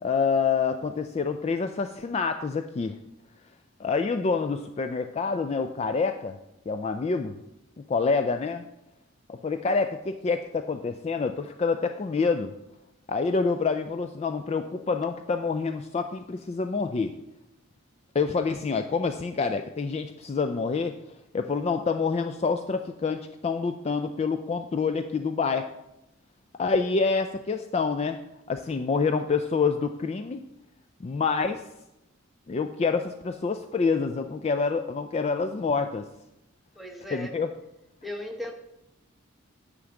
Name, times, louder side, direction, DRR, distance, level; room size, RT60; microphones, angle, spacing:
voice 1, 0.0-2.9 3.8-6.4 6.7-7.4 7.9-8.6 9.3-12.5 13.1-17.2 18.1-21.0 21.3-25.7 26.6-28.2 28.5-30.4 31.0-31.6 32.5-36.0 37.1-37.5, left 4 dB, 30° left, 7 dB, 0.3 m, -27 dB
voice 2, 36.7-37.4 38.0-38.5, left 1 dB, ahead, 2 dB, 0.9 m, -36 dB
9.7 x 3.8 x 7.0 m, 0.89 s
head